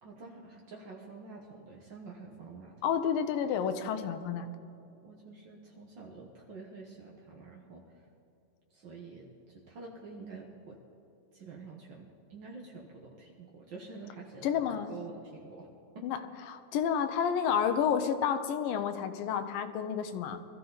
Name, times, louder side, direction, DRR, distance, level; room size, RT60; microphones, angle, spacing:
voice 1, 0.0-2.8 5.0-8.0 8.7-10.8 11.3-15.7 15.9-16.1, right 4 dB, 80° right, -1 dB, 1.0 m, -48 dB
voice 2, 2.8-4.5 14.4-14.9 16.0-16.2 16.5-20.4, left 8 dB, 85° left, 9 dB, 2.5 m, -30 dB
21.5 x 14.0 x 4.0 m, 2.6 s
omnidirectional pair, 3.9 m